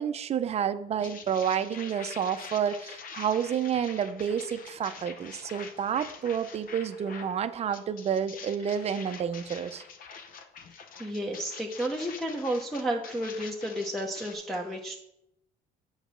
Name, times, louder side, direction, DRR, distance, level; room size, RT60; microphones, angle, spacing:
voice 1, 0.0-9.8, right 8 dB, 40° right, 11 dB, 0.5 m, -30 dB
sound 1, 1.0-7.4 7.7-14.3, left 5 dB, 55° left, 0.8 m, -45 dB
voice 2, 11.0-15.0, right 1 dB, ahead, -2 dB, 0.8 m, -32 dB
7.9 x 4.0 x 6.1 m, 0.80 s
cardioid pair, 110°, 17 cm